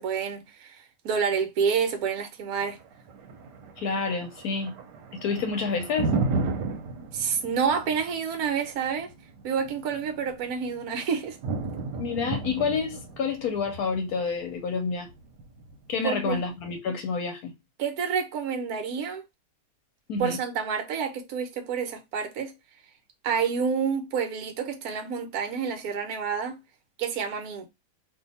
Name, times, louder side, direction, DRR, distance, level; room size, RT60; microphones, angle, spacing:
voice 1, 0.0-2.8 7.1-9.1 9.4-11.4 16.0-16.4 17.8-19.2 20.2-22.5 23.2-26.6 27.0-27.7, right 6 dB, 65° right, 1.2 m, -28 dB
Thunder, 2.6-16.6, right 3 dB, 85° right, 1.2 m, -34 dB
voice 2, 3.8-4.7 5.1-6.1 12.0-15.1 15.9-17.5 20.1-20.4, left 5 dB, 70° left, 1.0 m, -29 dB
2.7 x 2.5 x 3.9 m
omnidirectional pair, 1.8 m